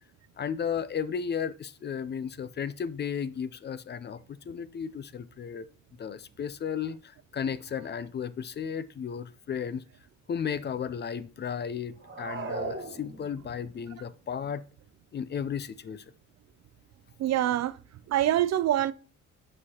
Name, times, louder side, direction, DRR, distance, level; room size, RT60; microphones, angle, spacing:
voice 1, 0.4-5.7 6.0-9.8 10.3-14.6 15.1-16.0, left 7 dB, 35° left, 0.4 m, -34 dB
sound 1, 12.0-13.6, right 3 dB, 40° right, 1.5 m, -37 dB
voice 2, 17.2-17.8 18.1-18.9, right 12 dB, 60° right, 0.5 m, -25 dB
8.3 x 4.8 x 2.8 m
cardioid pair, 90°, 30 cm